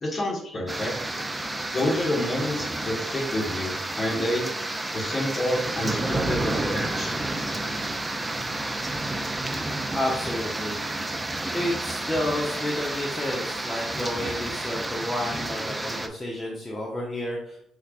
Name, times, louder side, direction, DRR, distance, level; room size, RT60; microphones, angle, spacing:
voice 1, 0.0-1.1 1.7-4.5 4.9-7.4, left 1 dB, 40° left, -2 dB, 1.7 m, -28 dB
sound 1, 0.7-16.1, right 2 dB, 15° right, 0.5 m, -30 dB
voice 2, 9.9-10.8 11.5-17.6, left 1 dB, 25° left, -2 dB, 0.9 m, -30 dB
5.5 x 3.4 x 2.5 m, 0.73 s
supercardioid pair, 70°, 0 cm